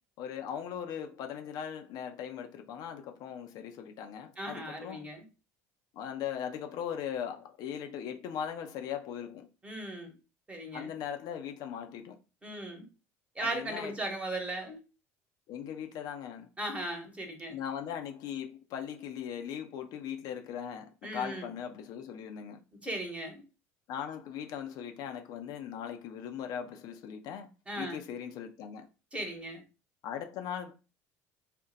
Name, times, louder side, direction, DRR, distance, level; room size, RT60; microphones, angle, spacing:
voice 1, 0.2-5.1 5.9-9.5 10.7-12.2 13.4-13.9 15.5-16.5 17.5-22.6 23.9-27.5 27.8-28.9 30.0-30.7, left 8 dB, 65° left, 0.5 m, -39 dB
voice 2, 4.4-5.2 9.6-10.1 10.5-10.9 12.4-12.8 13.4-14.8 16.6-17.6 21.0-21.5 22.8-23.4 27.7-28.0 29.1-29.6, right 1 dB, 15° right, 1.1 m, -37 dB
2.5 x 2.1 x 3.9 m
hypercardioid pair, 80°, 7 cm